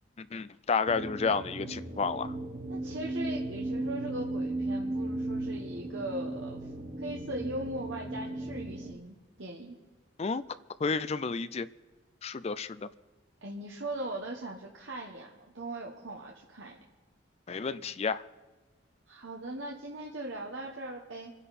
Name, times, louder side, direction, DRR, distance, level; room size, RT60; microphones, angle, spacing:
voice 1, 0.2-2.3 10.2-10.4 10.8-11.7 12.2-12.8 17.5-18.2, left 5 dB, 35° left, 0.4 m, -31 dB
sound 1, 0.9-8.9, right 1 dB, 40° right, 1.1 m, -36 dB
voice 2, 2.7-6.6 7.0-9.8 13.4-16.8 19.1-21.3, right 1 dB, 75° right, 1.5 m, -39 dB
26.0 x 10.5 x 4.3 m
head